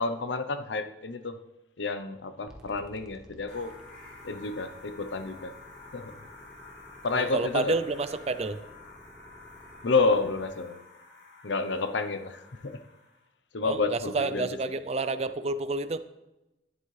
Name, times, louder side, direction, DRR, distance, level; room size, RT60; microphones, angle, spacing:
voice 1, 0.0-1.4 1.8-3.7 4.2-5.5 5.9-6.2 7.0-7.7 9.8-10.8 11.4-12.8 13.5-14.5, left 3 dB, 90° left, 0.8 m, -29 dB
sound 1, 2.5-10.5, equal, 5° right, 1.2 m, -54 dB
sound 2, 3.5-13.2, left 3 dB, 70° left, 3.4 m, -50 dB
voice 2, 7.1-8.6 13.6-16.0, right 3 dB, 35° right, 0.5 m, -29 dB
11.0 x 10.5 x 3.3 m
head